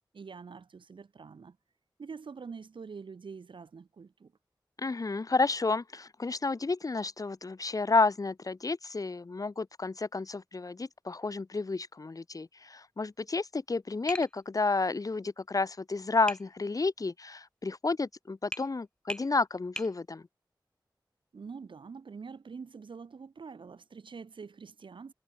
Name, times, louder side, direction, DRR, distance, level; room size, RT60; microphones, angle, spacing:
voice 1, 0.1-1.6 2.0-4.3 21.3-25.1, right 5 dB, 90° right, 1.0 m, -45 dB
voice 2, 4.8-20.2, left 3 dB, 45° left, 0.6 m, -31 dB
Tap, 14.1-14.3 16.3-16.5 18.5-18.7 19.1-19.3 19.8-19.9, left 1 dB, 10° left, 1.3 m, -37 dB
wide cardioid pair, 55°, 8 cm